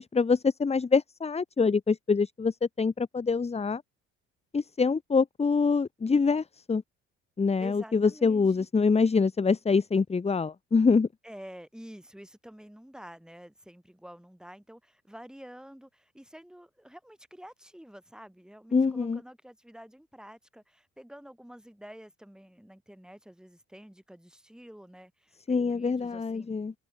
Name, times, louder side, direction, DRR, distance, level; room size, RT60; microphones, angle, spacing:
voice 1, 0.0-3.8 4.5-6.8 7.4-11.1 18.7-19.2 25.5-26.7, left 4 dB, 20° left, 1.2 m, -25 dB
voice 2, 7.6-8.7 11.2-26.5, equal, ahead, 5.7 m, -49 dB
supercardioid pair, 85°, 30 cm